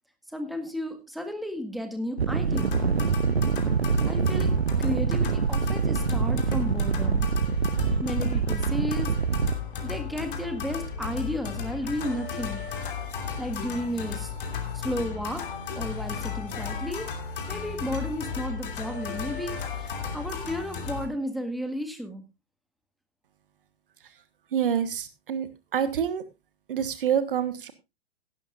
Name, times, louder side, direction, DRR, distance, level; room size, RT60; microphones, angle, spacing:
voice 1, 0.3-2.8 4.1-4.5 4.8-7.3 8.0-9.1 9.8-12.6 13.4-14.3 14.7-15.4 15.8-17.1 17.5-22.2, equal, ahead, 6 dB, 1.8 m, -33 dB
sound 1, 2.2-9.6, right 6 dB, 80° right, 0.7 m, -25 dB
sound 2, 2.5-21.1, left 5 dB, 55° left, 2.8 m, -34 dB
voice 2, 24.5-26.2 26.7-27.7, right 8 dB, 60° right, 13 dB, 1.4 m, -27 dB
16.0 x 12.0 x 2.5 m, 0.24 s
figure-of-eight pair, 105°, 31 cm